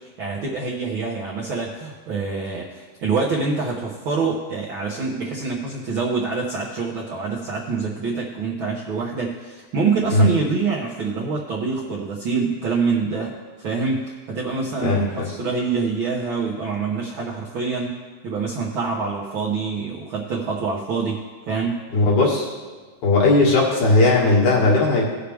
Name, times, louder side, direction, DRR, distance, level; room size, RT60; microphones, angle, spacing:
voice 1, 0.0-13.3 13.6-21.9, right 4 dB, 60° right, -4 dB, 1.4 m, -26 dB
voice 2, 14.8-15.3 21.9-22.5 23.0-25.1, left 2 dB, 65° left, -4 dB, 3.3 m, -17 dB
17.5 x 6.6 x 3.5 m, 1.5 s
omnidirectional pair, 3.6 m